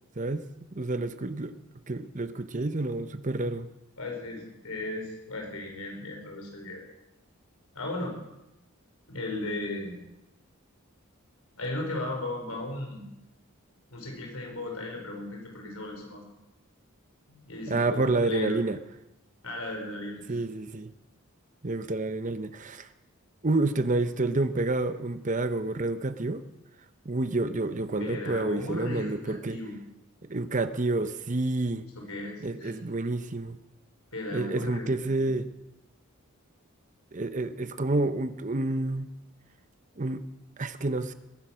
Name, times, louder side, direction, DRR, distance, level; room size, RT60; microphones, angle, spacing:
voice 1, 0.7-1.5 1.9-3.7 17.7-18.8 20.3-20.9 21.6-22.9 23.4-26.4 27.0-29.6 30.2-31.8 32.4-33.6 34.3-35.5 37.1-39.1 40.0-40.2 40.6-41.1, right 2 dB, 35° right, 11 dB, 0.8 m, -29 dB
voice 2, 4.0-6.8 7.7-8.1 9.1-10.0 11.6-13.0 13.9-16.2 17.3-17.9 18.2-18.6 19.4-20.2 28.0-29.8 31.9-32.7 34.1-34.9 35.2-35.3, left 2 dB, 85° left, 1 dB, 4.8 m, -36 dB
21.0 x 10.0 x 6.3 m, 0.91 s
head